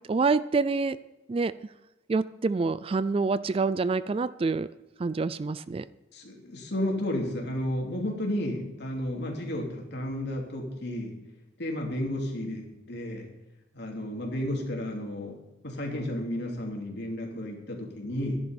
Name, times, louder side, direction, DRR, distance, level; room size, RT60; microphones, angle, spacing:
voice 1, 0.1-1.0 1.3-1.5 2.1-4.7 5.0-5.8, right 4 dB, 30° right, 16 dB, 0.3 m, -26 dB
voice 2, 6.1-11.2 11.6-13.3 13.7-15.4 15.6-18.4, left 1 dB, 60° left, 0 dB, 2.9 m, -32 dB
13.0 x 11.0 x 5.2 m, 1.0 s
head